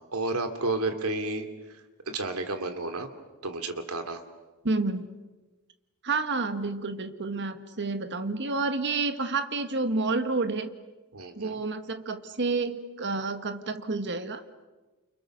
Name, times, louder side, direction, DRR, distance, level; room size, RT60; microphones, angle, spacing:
voice 1, 0.0-1.5 2.1-3.1 3.4-4.2 11.1-11.6, right 2 dB, 75° right, 7 dB, 2.9 m, -31 dB
voice 2, 4.6-5.1 6.0-10.7 11.4-14.4, right 3 dB, 55° right, 8 dB, 1.7 m, -29 dB
29.5 x 29.0 x 6.6 m, 1.2 s
head